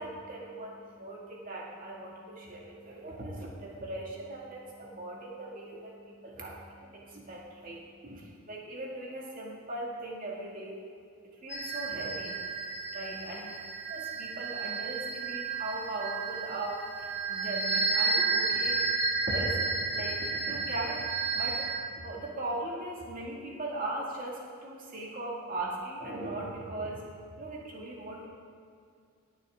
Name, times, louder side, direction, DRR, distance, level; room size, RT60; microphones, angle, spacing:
voice 1, 0.0-10.8 11.4-12.4 12.9-13.5 13.9-18.8 19.3-21.1 21.3-27.0 27.4-28.3, right 2 dB, 40° right, -3 dB, 2.4 m, -39 dB
sound 1, 11.5-21.8, right 4 dB, 5° right, 1.2 m, -32 dB
17.0 x 9.0 x 3.8 m, 2.3 s
head